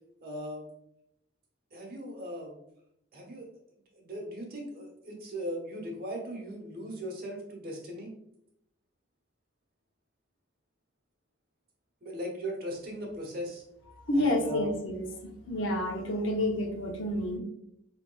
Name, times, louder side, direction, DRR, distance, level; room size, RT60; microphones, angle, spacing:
voice 1, 0.2-0.6 1.7-2.5 3.1-3.5 3.9-8.1 12.0-13.6 14.1-14.7, equal, 55° right, 0 dB, 1.1 m, -38 dB
voice 2, 14.1-17.4, left 1 dB, 85° left, 1 dB, 0.8 m, -29 dB
4.8 x 2.9 x 2.2 m, 0.78 s
head